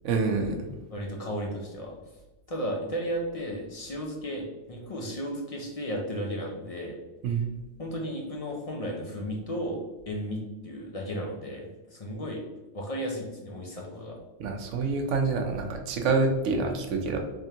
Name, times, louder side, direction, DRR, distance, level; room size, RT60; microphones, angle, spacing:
voice 1, 0.0-0.7 7.2-7.5 14.4-17.2, right 4 dB, 80° right, 3 dB, 1.0 m, -27 dB
voice 2, 0.9-2.0 2.5-6.9 7.8-12.4 12.7-14.2, equal, 45° left, 0 dB, 0.4 m, -34 dB
3.5 x 3.3 x 2.8 m, 1.1 s
omnidirectional pair, 1.2 m